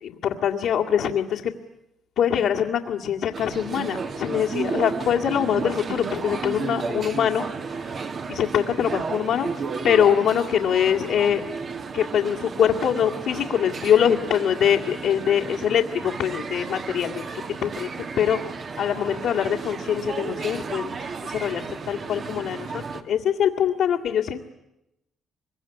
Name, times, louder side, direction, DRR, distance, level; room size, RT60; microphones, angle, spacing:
voice 1, 0.0-1.5 2.2-7.4 8.3-9.5 9.8-11.4 11.9-17.2 17.6-18.4 18.8-20.9 21.2-24.4, left 9 dB, 80° left, -5 dB, 2.1 m, -23 dB
sound 1, 3.3-23.0, right 5 dB, 50° right, 2.0 m, -33 dB
25.5 x 23.5 x 9.7 m, 0.88 s
cardioid pair, 90°, 0 cm